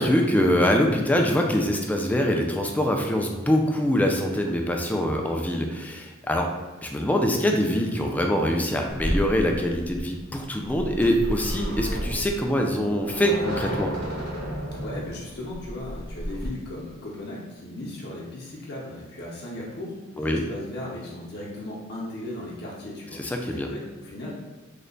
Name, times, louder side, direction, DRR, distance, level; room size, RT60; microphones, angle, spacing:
voice 1, 0.0-6.5 6.8-13.9 20.2-20.4 23.2-23.7, equal, 10° left, 2 dB, 0.3 m, -24 dB
sound 1, 8.9-16.5, equal, 55° right, 0.9 m, -32 dB
voice 2, 14.7-24.3, left 1 dB, 55° left, -5 dB, 0.7 m, -37 dB
3.2 x 2.1 x 3.8 m, 1.3 s
head